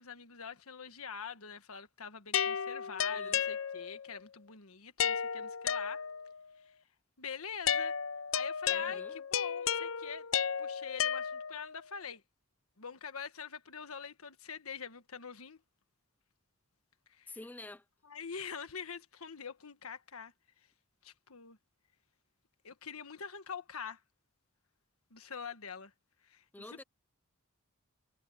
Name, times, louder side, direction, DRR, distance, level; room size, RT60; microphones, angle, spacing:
voice 1, 0.0-6.0 6.6-6.7 7.2-7.9 8.3-10.3 10.6-12.2 12.8-15.6 17.1-17.4 18.0-20.3 21.0-21.6 22.6-24.0 25.1-25.9 26.2-26.4 26.7-26.8, left 6 dB, 85° left, 1.5 m, -45 dB
sound 1, 2.3-4.1 5.0-6.4 7.7-11.8, left 8 dB, 65° left, 0.5 m, -33 dB
voice 2, 3.1-3.4 8.7-9.2 17.3-17.9 26.5-26.8, left 2 dB, 10° left, 0.3 m, -49 dB
head